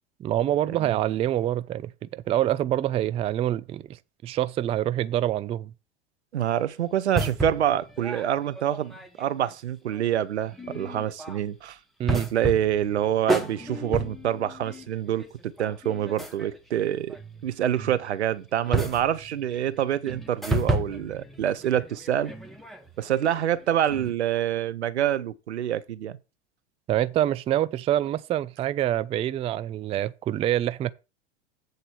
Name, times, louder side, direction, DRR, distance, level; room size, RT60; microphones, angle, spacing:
voice 1, 0.2-3.8 4.2-5.7 12.0-12.3 26.9-30.9, right 12 dB, 20° right, 0.4 m, -26 dB
voice 2, 6.3-11.8 12.1-17.2 17.4-22.3 23.0-26.2, right 11 dB, 80° right, 0.7 m, -26 dB
sound 1, 7.2-9.5 9.9-10.1 10.5-11.4 12.1-18.1 18.5-24.1, right 1 dB, ahead, 1.7 m, -33 dB
7.9 x 4.0 x 6.8 m
figure-of-eight pair, 85°, 33 cm